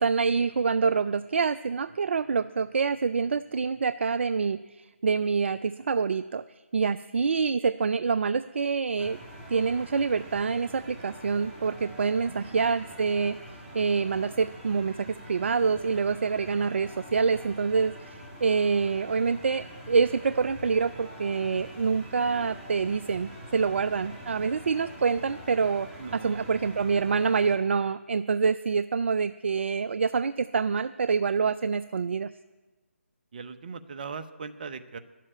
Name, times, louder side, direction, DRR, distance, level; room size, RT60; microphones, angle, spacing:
voice 1, 0.0-6.4 6.7-9.2 9.5-25.9 26.2-32.3, right 5 dB, 60° right, 15 dB, 0.3 m, -26 dB
sound 1, 9.0-27.6, equal, 10° right, 2.0 m, -45 dB
voice 2, 12.2-12.6 19.0-19.1 26.0-26.8 33.3-35.0, right 5 dB, 40° right, 10 dB, 0.8 m, -40 dB
11.0 x 7.5 x 9.0 m, 1.3 s
figure-of-eight pair, 150°, 7 cm